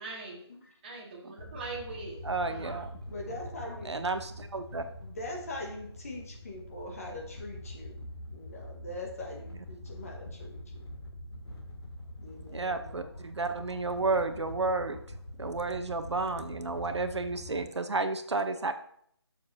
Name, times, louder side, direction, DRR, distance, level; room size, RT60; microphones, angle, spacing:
voice 1, 0.0-0.4 0.8-2.9, right 3 dB, 20° right, -3 dB, 1.9 m, -42 dB
sound 1, 1.4-17.7, left 1 dB, 65° left, 2.3 m, -44 dB
voice 2, 2.2-2.9 3.8-4.9 12.5-15.0 15.4-18.7, right 3 dB, 80° right, 9 dB, 0.9 m, -32 dB
voice 3, 3.1-3.9 5.0-8.0 8.3-10.9 12.2-13.1, left 1 dB, 35° left, 0 dB, 1.5 m, -42 dB
12.5 x 6.7 x 2.8 m, 0.66 s
figure-of-eight pair, 170°, 14 cm